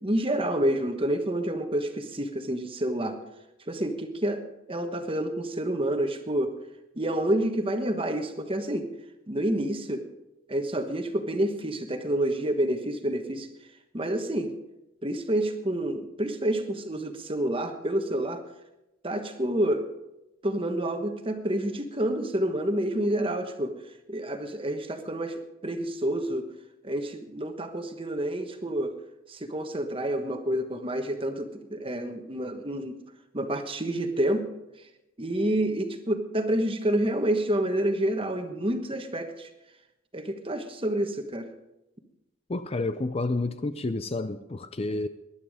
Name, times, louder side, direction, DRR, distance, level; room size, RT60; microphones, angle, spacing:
voice 1, 0.0-3.2 3.7-4.4 4.7-6.6 6.9-8.9 9.3-10.1 10.5-13.5 13.9-14.5 15.0-18.4 19.0-19.9 20.4-23.8 24.1-26.5 26.8-29.0 29.3-32.9 33.3-34.5 34.8-34.9 35.2-39.5 40.1-41.5, right 1 dB, 25° right, 6 dB, 1.3 m, -28 dB
voice 2, 42.5-45.1, left 2 dB, 30° left, 11 dB, 0.5 m, -30 dB
20.0 x 11.5 x 5.0 m, 0.95 s
head